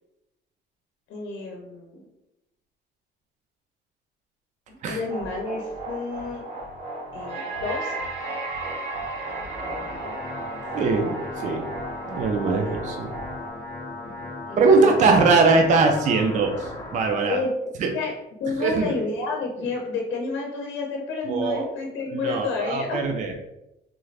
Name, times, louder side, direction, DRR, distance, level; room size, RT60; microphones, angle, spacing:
voice 1, 1.1-2.0 4.9-6.4 7.1-7.9 12.6-12.7 14.1-15.1 17.3-18.1 18.4-23.0, left 3 dB, 85° left, 0 dB, 0.7 m, -30 dB
sound 1, 5.1-13.5, right 2 dB, 70° right, 1.0 m, -34 dB
sound 2, 9.1-17.1, left 2 dB, 20° left, 0.5 m, -37 dB
voice 2, 10.7-11.7 12.1-13.1 14.6-17.4 17.8-17.9 18.6-18.9 21.3-21.6 22.1-23.3, right 4 dB, 40° right, 3 dB, 0.4 m, -21 dB
3.7 x 2.4 x 3.2 m, 0.90 s
cardioid pair, 175°, 19 cm